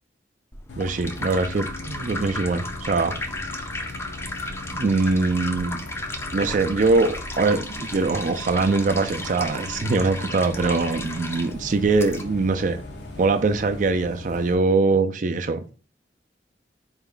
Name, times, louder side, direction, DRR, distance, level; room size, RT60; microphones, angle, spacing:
sound 1, 0.5-12.2, left 2 dB, 15° left, 0.4 m, -34 dB
Bus, 0.7-14.5, left 2 dB, 85° left, 0.7 m, -39 dB
voice 1, 0.8-3.2 4.7-5.8 6.3-12.8 13.2-15.7, right 3 dB, 45° right, 0.4 m, -22 dB
4.3 x 2.3 x 3.7 m
head